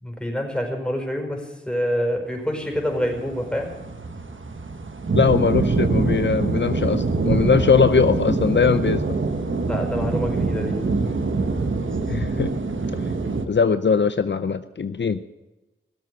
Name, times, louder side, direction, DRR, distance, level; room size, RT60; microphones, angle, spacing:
voice 1, 0.0-3.7 9.6-10.8, equal, 5° left, 1 dB, 5.1 m, -26 dB
sound 1, 2.8-13.5, right 3 dB, 70° right, 1.3 m, -24 dB
voice 2, 5.1-9.1 12.1-12.5 13.5-15.2, left 6 dB, 60° left, 12 dB, 0.6 m, -20 dB
18.0 x 7.7 x 9.7 m, 1.1 s
cardioid pair, 45°, 21 cm